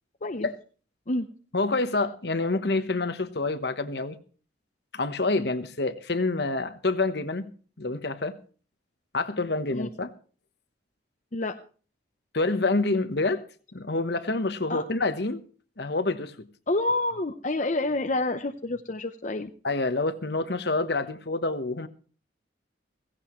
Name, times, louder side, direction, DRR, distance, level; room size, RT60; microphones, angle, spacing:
voice 1, 1.5-4.2 4.9-7.5 7.8-8.3 9.1-10.1 12.3-13.4 13.7-15.4 15.8-16.5 19.6-21.9, left 3 dB, 55° left, 1.1 m, -27 dB
voice 2, 16.7-19.5, left 2 dB, 40° left, 0.7 m, -28 dB
16.5 x 16.0 x 3.1 m
head